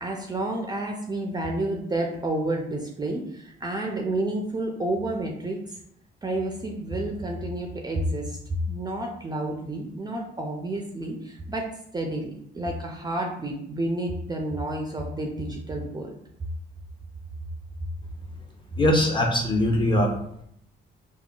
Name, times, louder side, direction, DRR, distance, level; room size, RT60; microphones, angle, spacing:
voice 1, 0.0-5.8 6.2-8.4 8.7-16.1, right 1 dB, 20° right, 1 dB, 0.4 m, -30 dB
voice 2, 18.8-20.1, left 1 dB, 25° left, 1 dB, 0.6 m, -21 dB
3.5 x 2.1 x 2.3 m, 0.71 s
cardioid pair, 90°, 20 cm